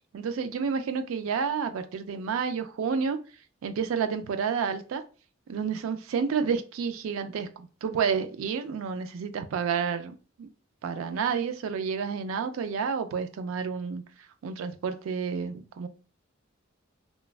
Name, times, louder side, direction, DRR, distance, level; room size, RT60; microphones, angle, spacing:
voice 1, 0.1-3.2 3.6-5.0 5.5-10.5 10.8-14.0 14.4-15.9, right 6 dB, 80° right, 0.3 m, -30 dB
3.0 x 2.2 x 2.4 m
head